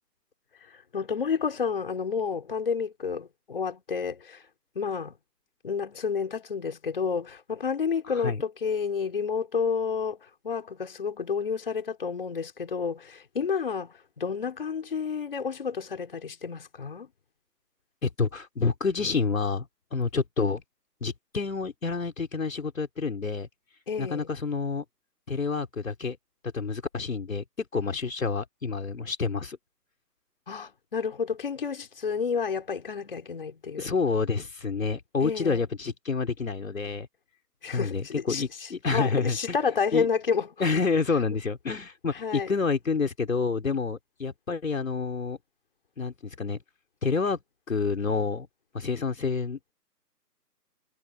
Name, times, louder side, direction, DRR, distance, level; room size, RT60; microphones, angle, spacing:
voice 1, 0.7-4.4 4.7-5.2 5.6-17.1 23.9-24.3 30.5-33.9 35.2-35.6 37.6-40.5 42.2-42.5, left 6 dB, 35° left, 4.5 m, -30 dB
voice 2, 18.0-20.6 21.0-23.5 24.0-24.8 25.3-26.2 26.5-29.6 33.8-37.1 37.7-39.6 39.9-40.1 40.6-45.4 46.0-46.6 47.0-47.4 47.7-48.5 48.7-49.7, left 4 dB, 55° left, 3.8 m, -28 dB
hypercardioid pair, 175°, 49 cm